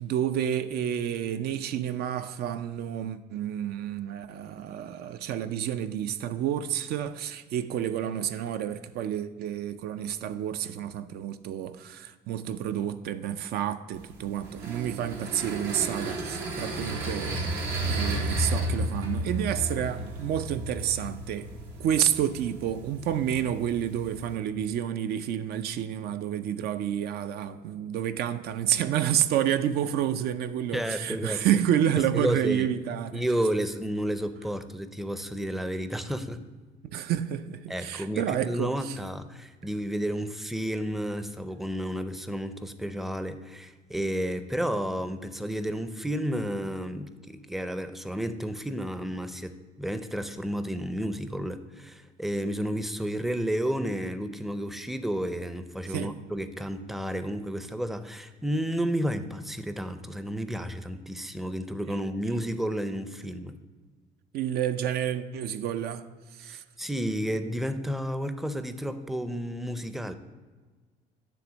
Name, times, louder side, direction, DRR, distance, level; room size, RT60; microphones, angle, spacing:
voice 1, 0.0-21.5 21.8-33.2 36.9-39.0 55.9-56.1 61.9-62.0 64.3-66.6, right 10 dB, 70° right, 0.4 m, -29 dB
sound 1, 13.9-24.4, right 1 dB, 85° right, 1.2 m, -33 dB
voice 2, 30.7-31.4 32.1-32.7 33.1-36.4 37.7-63.6 66.5-70.1, equal, ahead, 0.5 m, -31 dB
9.9 x 3.4 x 6.2 m
cardioid pair, 110°, 17 cm